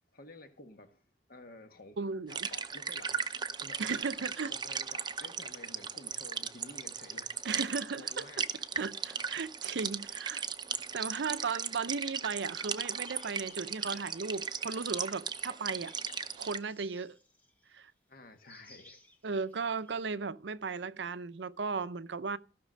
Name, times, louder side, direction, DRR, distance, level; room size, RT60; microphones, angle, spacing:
voice 1, 0.1-1.0 1.3-2.0 2.3-4.1 4.4-7.4 7.9-8.8 18.1-19.0, left 2 dB, 55° left, 1.6 m, -52 dB
voice 2, 2.0-2.4 3.8-4.5 7.4-8.4 8.8-10.4 10.9-15.9 16.4-17.2 17.7-17.9 19.2-22.4, right 4 dB, 80° right, 0.6 m, -36 dB
sound 1, 2.3-16.6, right 6 dB, 25° right, 0.6 m, -37 dB
sound 2, 12.8-17.8 18.5-19.9, left 2 dB, 10° left, 1.6 m, -57 dB
15.5 x 6.0 x 6.5 m
head